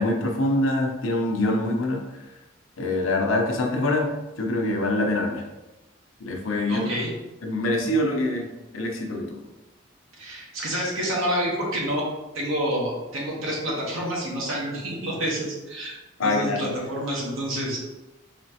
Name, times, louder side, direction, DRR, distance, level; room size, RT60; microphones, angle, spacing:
voice 1, 0.0-2.0 2.8-4.1 4.4-5.4 6.2-6.9 7.4-8.5 8.7-9.4 16.2-16.6, left 1 dB, 80° left, 2 dB, 0.7 m, -24 dB
voice 2, 6.7-7.1 10.2-12.1 12.3-15.9 16.2-17.8, equal, 85° right, -3 dB, 1.2 m, -28 dB
4.2 x 3.1 x 2.8 m, 1.0 s
head